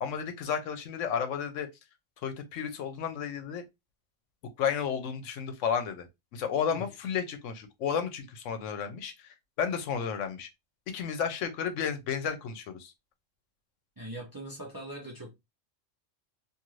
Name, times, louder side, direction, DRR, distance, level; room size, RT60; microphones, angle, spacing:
voice 1, 0.0-1.7 2.2-3.6 4.6-6.1 6.3-10.5 10.9-12.9, left 7 dB, 75° left, 1.0 m, -32 dB
voice 2, 14.0-15.3, right 1 dB, 25° right, 0.5 m, -41 dB
2.6 x 2.5 x 3.0 m
omnidirectional pair, 1.3 m